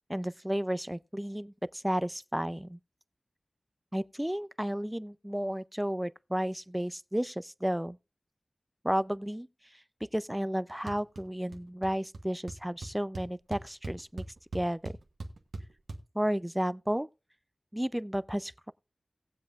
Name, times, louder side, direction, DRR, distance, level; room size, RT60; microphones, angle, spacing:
voice 1, 0.1-2.8 3.9-8.0 8.8-9.5 10.1-14.2 14.5-14.9 16.1-17.1 17.7-18.7, equal, 10° right, 0.4 m, -32 dB
sound 1, 10.9-11.2 11.5-11.9 12.1-12.2 12.5-16.0, right 2 dB, 90° right, 1.2 m, -40 dB
18.5 x 7.6 x 2.4 m
wide cardioid pair, 55°, 0 cm